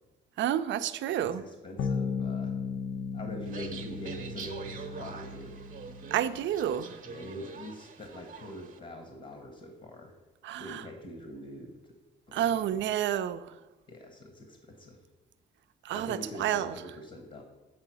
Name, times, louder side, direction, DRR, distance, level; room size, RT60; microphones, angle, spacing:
voice 1, 0.4-1.4 6.1-7.0 10.4-10.8 12.3-13.6 15.8-16.7, right 10 dB, 70° right, 0.4 m, -30 dB
voice 2, 1.2-2.5 3.1-5.6 7.1-10.1 10.6-11.8 12.3-12.7 13.9-15.0 15.9-17.4, left 1 dB, 40° left, 1.2 m, -44 dB
sound 1, 1.8-6.6, left 5 dB, 85° left, 0.6 m, -36 dB
sound 2, 3.4-8.8, right 5 dB, 40° right, 0.8 m, -45 dB
7.5 x 3.8 x 6.2 m
cardioid pair, 90°, 20 cm